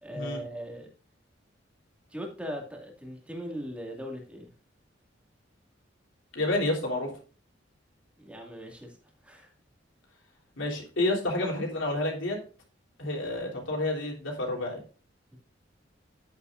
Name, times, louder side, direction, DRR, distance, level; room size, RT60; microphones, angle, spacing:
voice 1, 0.0-0.9 2.1-4.5 8.2-8.9 9.2-9.5, equal, 5° right, 0 dB, 2.3 m, -39 dB
voice 2, 6.3-7.1 10.6-12.4 13.0-14.8, left 2 dB, 75° left, -1 dB, 3.6 m, -29 dB
11.0 x 9.2 x 2.6 m, 0.38 s
head